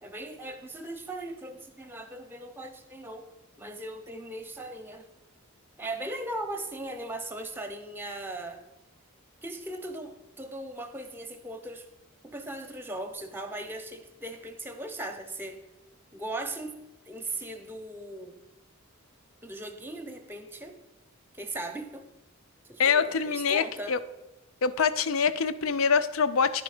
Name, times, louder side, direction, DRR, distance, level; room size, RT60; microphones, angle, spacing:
voice 1, 0.0-3.2 3.6-5.0 5.8-8.6 9.4-11.9 12.2-15.6 16.1-16.8 17.1-18.4 19.4-20.7 21.3-22.0 22.7-23.9, right 1 dB, 10° right, 6 dB, 0.7 m, -38 dB
voice 2, 22.8-24.0 24.6-26.6, left 6 dB, 75° left, 12 dB, 0.5 m, -25 dB
10.0 x 5.2 x 4.9 m, 0.96 s
head